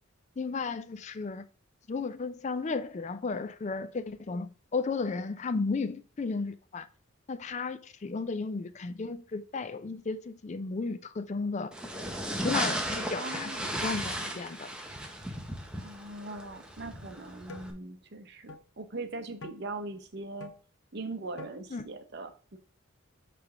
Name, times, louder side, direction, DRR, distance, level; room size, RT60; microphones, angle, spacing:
voice 1, 0.4-1.4 1.9-6.9 7.3-11.7 12.4-14.7 21.7-21.9, left 4 dB, 35° left, 0.4 m, -34 dB
sound 1, 11.7-17.7, right 1 dB, 5° right, 0.8 m, -35 dB
voice 2, 13.2-13.9 15.8-20.5 20.9-22.6, right 2 dB, 55° right, 0.8 m, -41 dB
sound 2, 17.5-17.7 18.5-18.6 19.4-19.6 20.4-20.6 21.4-21.6, left 2 dB, 65° left, 0.7 m, -45 dB
5.8 x 3.3 x 5.6 m
head